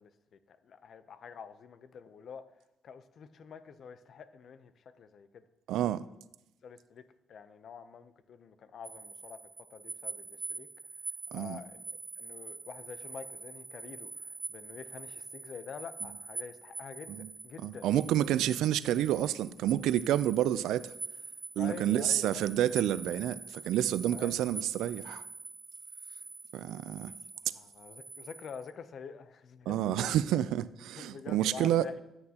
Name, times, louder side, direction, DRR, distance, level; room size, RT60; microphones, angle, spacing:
voice 1, 0.0-2.5 2.8-5.4 6.6-10.7 11.3-17.9 21.6-22.5 24.1-24.3 27.5-30.2 31.0-32.0, left 6 dB, 60° left, 0.6 m, -47 dB
voice 2, 5.7-6.0 11.3-11.6 17.1-17.3 17.6-20.9 21.6-25.2 26.5-27.1 29.7-31.9, right 12 dB, 85° right, 0.4 m, -29 dB
sound 1, 8.8-28.7, right 3 dB, 30° right, 1.2 m, -44 dB
13.0 x 8.7 x 2.9 m
cardioid pair, 90°, 0 cm